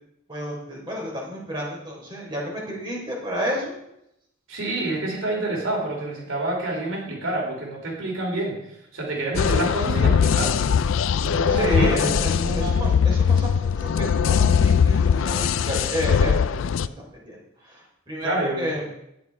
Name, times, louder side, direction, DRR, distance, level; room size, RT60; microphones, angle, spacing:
voice 1, 0.3-3.8 11.4-16.6 17.0-17.4 17.7-18.8, equal, 25° right, -3 dB, 4.1 m, -31 dB
voice 2, 4.5-10.7 11.2-12.9 18.2-18.7, right 2 dB, 80° right, 0 dB, 3.0 m, -28 dB
sound 1, 9.3-16.9, left 6 dB, 75° left, 0.4 m, -21 dB
11.5 x 9.2 x 4.8 m, 0.79 s
head